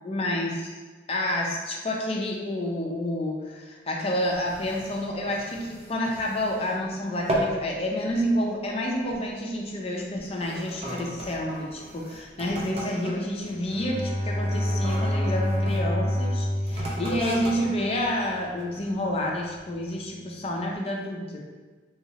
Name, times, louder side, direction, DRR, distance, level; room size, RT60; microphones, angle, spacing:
voice 1, 0.0-0.8 1.1-21.4, left 1 dB, 35° left, -1 dB, 0.4 m, -29 dB
sound 1, 4.2-6.8 7.1-7.7 8.0-8.4 9.0-9.3 10.0-15.8 16.6-19.0 19.5-19.6, equal, 35° right, 0.5 m, -35 dB
Bowed string instrument, 13.7-18.0, equal, 75° right, 0.9 m, -28 dB
3.1 x 2.9 x 2.8 m, 1.3 s
head